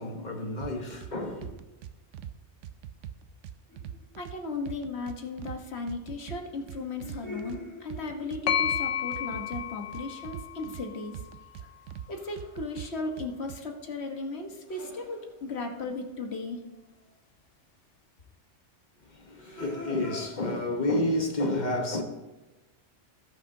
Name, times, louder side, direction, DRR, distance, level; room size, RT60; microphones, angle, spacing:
voice 1, 0.0-1.5 19.1-22.0, left 1 dB, 40° left, 1.3 m, -30 dB
sound 1, 0.6-1.1 1.4-2.3 2.6-4.4 4.7-5.6 5.9-7.6 7.9-8.8 9.1-10.8 11.1-12.1 12.4-13.6, right 10 dB, 85° right, 0.9 m, -41 dB
sound 2, 3.7-4.4 6.5-9.1 12.1-12.7 13.0-16.7 17.1-17.2 19.2-20.3, left 2 dB, 15° left, 1.7 m, -46 dB
voice 2, 4.2-11.2 12.1-16.6, left 3 dB, 60° left, 1.5 m, -36 dB
sound 3, 8.5-12.2, left 9 dB, 75° left, 1.1 m, -33 dB
17.5 x 6.1 x 2.7 m
omnidirectional pair, 1.2 m